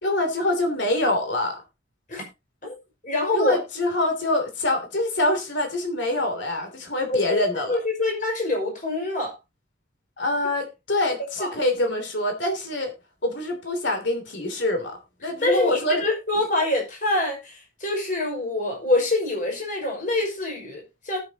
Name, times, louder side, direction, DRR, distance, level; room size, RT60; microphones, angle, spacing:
voice 1, 0.0-1.6 3.3-7.8 10.2-12.9 13.2-16.0, left 1 dB, 65° left, 3.0 m, -25 dB
voice 2, 3.0-3.6 7.1-7.4 7.7-9.3 11.4-11.6 15.4-21.2, left 2 dB, 40° left, 5.6 m, -25 dB
19.0 x 7.3 x 2.9 m
head